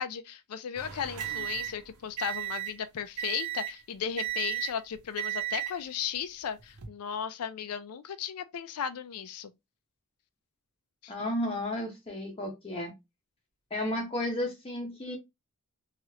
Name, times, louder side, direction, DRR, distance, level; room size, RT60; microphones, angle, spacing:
voice 1, 0.0-9.5 11.0-11.1, left 8 dB, 75° left, 0.4 m, -35 dB
sound 1, 0.7-2.8 3.2-3.8 4.2-4.8 5.2-5.8 6.6-6.9, right 12 dB, 80° right, 0.8 m, -35 dB
voice 2, 11.1-12.9 13.7-15.2, left 1 dB, 25° left, 0.7 m, -33 dB
3.1 x 2.4 x 2.7 m
head